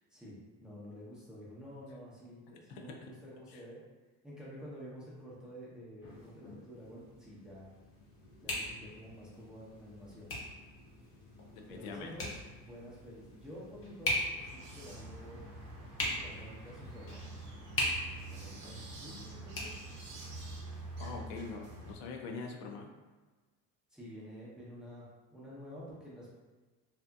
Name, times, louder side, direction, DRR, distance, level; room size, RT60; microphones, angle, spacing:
voice 1, 0.1-3.8 4.2-7.7 8.4-10.3 11.7-15.5 16.0-17.3 18.2-19.8 21.2-21.5 23.9-26.3, equal, ahead, -7 dB, 0.6 m, -50 dB
voice 2, 2.7-3.1 3.5-3.6 11.5-12.1 21.0-22.9, left 4 dB, 80° left, 2 dB, 0.5 m, -43 dB
sound 1, 6.0-21.2, left 1 dB, 35° left, 0.7 m, -41 dB
sound 2, 14.4-22.0, right 2 dB, 65° right, 0.7 m, -47 dB
2.7 x 2.4 x 2.2 m, 1.3 s
cardioid pair, 135°, 36 cm